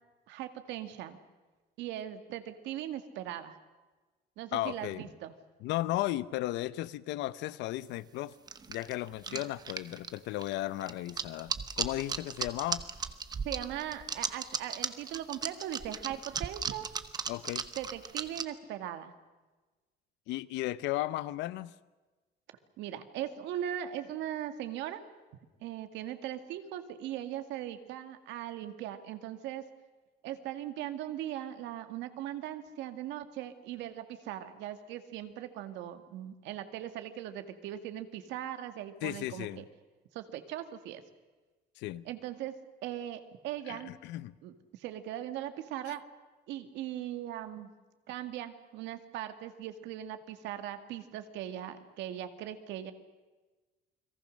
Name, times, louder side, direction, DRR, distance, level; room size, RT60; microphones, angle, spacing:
voice 1, 0.3-1.2 1.8-3.6 4.4-5.3 9.3-9.4 13.4-16.9 17.8-19.1 22.8-25.0 25.6-29.7 30.2-39.7 40.1-41.0 42.1-42.6 42.8-43.9 44.4-46.0 46.5-47.7 48.1-52.9, right 11 dB, 90° right, 2.0 m, -39 dB
voice 2, 4.5-5.1 5.6-8.3 8.7-12.8 17.3-17.6 20.3-21.7 39.0-39.6 41.8-42.1 43.7-44.3, left 16 dB, 85° left, 0.8 m, -35 dB
sound 1, 8.5-18.4, right 6 dB, 20° right, 0.9 m, -36 dB
29.5 x 22.0 x 6.5 m
cardioid pair, 170°, 18 cm